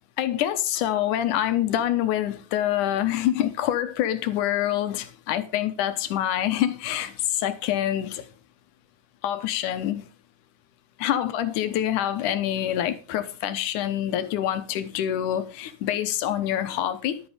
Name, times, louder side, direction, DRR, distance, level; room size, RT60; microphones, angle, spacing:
voice 1, 0.2-8.3 9.2-10.1 11.0-17.2, left 11 dB, 80° left, 2.4 m, -26 dB
11.5 x 8.3 x 4.9 m
omnidirectional pair, 3.7 m